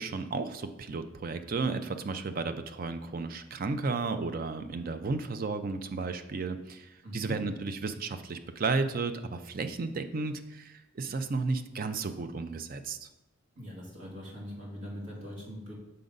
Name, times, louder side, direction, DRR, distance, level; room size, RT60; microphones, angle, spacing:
voice 1, 0.0-13.1, right 4 dB, 45° right, 9 dB, 0.4 m, -33 dB
voice 2, 7.0-7.4 13.6-15.7, equal, 75° right, -4 dB, 2.1 m, -41 dB
6.8 x 3.8 x 5.2 m, 0.99 s
head